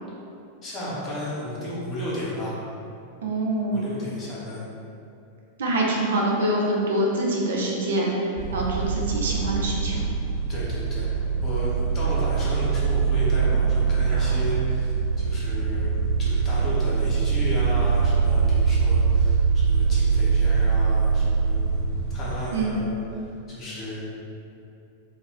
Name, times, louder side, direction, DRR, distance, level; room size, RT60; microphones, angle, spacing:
voice 1, 0.6-2.5 3.7-4.6 10.5-15.9 16.2-21.8 22.1-22.9 23.5-24.0, equal, 30° left, -7 dB, 0.8 m, -33 dB
voice 2, 3.2-3.8 5.6-10.0 22.5-22.8, right 1 dB, 60° right, -2 dB, 0.4 m, -25 dB
sound 1, 8.4-22.4, right 5 dB, 35° right, 1.0 m, -23 dB
2.2 x 2.1 x 3.4 m, 2.6 s
figure-of-eight pair, 90°, 0 cm